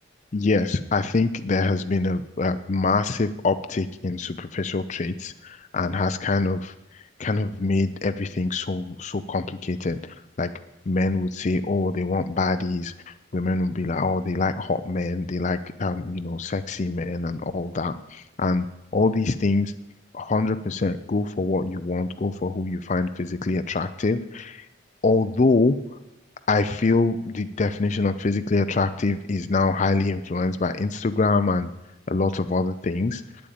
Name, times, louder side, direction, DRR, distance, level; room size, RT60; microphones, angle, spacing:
voice 1, 0.3-10.5 10.9-18.7 18.9-19.7 20.1-24.7 25.0-25.8 26.5-31.7 32.1-33.2, left 3 dB, 35° left, 10 dB, 0.4 m, -25 dB
9.0 x 8.6 x 8.7 m, 0.94 s
head